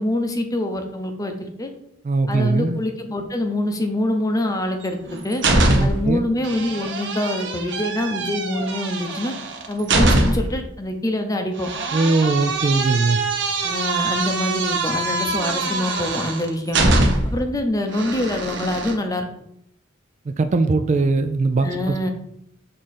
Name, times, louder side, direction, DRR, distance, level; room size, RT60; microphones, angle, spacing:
voice 1, 0.0-1.7 2.3-5.4 5.8-9.3 9.7-11.7 13.6-16.8 17.2-19.2 21.6-22.1, left 1 dB, 20° left, 0.7 m, -25 dB
voice 2, 2.0-2.8 5.7-6.2 11.9-13.2 20.3-22.1, right 3 dB, 35° right, 0.3 m, -20 dB
sound 1, 4.8-6.1 6.4-10.6 11.6-17.4 17.9-18.9, right 2 dB, 60° right, 0.9 m, -23 dB
6.6 x 3.7 x 4.1 m
head